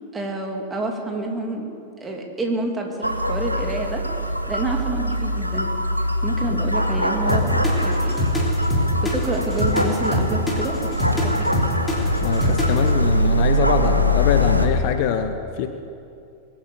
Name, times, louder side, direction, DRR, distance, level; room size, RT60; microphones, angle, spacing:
voice 1, 0.1-1.7 2.0-4.0 4.5-5.7 6.2-8.2 9.0-10.9 11.2-11.7, right 2 dB, 15° right, 1 dB, 2.7 m, -28 dB
sound 1, 3.0-14.7, equal, 90° right, 1.1 m, -22 dB
sound 2, 7.3-12.9, left 1 dB, 10° left, 3.3 m, -24 dB
voice 2, 12.2-15.7, left 8 dB, 45° left, 7 dB, 1.0 m, -24 dB
22.5 x 8.7 x 6.8 m, 2.5 s
figure-of-eight pair, 90°, 0 cm